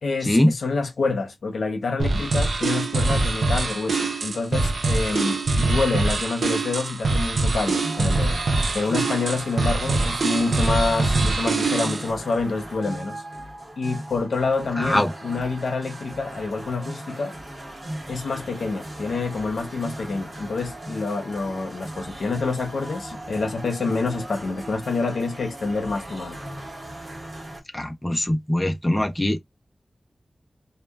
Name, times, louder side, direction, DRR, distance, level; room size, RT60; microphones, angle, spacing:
voice 1, 0.0-8.4 8.7-13.2 13.8-17.3 18.1-26.4, left 3 dB, 90° left, 0.6 m, -27 dB
sound 1, 2.0-12.1, right 3 dB, 85° right, 0.5 m, -23 dB
sound 2, 7.7-27.6, right 1 dB, 40° right, 0.8 m, -38 dB
voice 2, 14.8-15.1 27.7-29.4, left 1 dB, 15° left, 0.5 m, -21 dB
2.2 x 2.1 x 3.2 m
wide cardioid pair, 75°, 0 cm